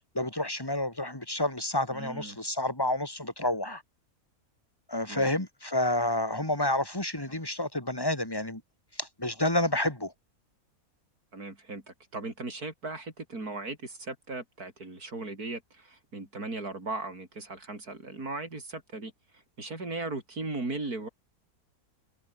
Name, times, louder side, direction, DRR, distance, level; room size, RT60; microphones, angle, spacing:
voice 1, 0.1-3.8 4.9-8.6 8.9-10.1, left 1 dB, 15° left, 3.2 m, -29 dB
voice 2, 1.9-2.4 5.1-5.3 11.3-19.1 19.6-21.1, right 2 dB, 85° right, 5.7 m, -37 dB
omnidirectional pair, 1.6 m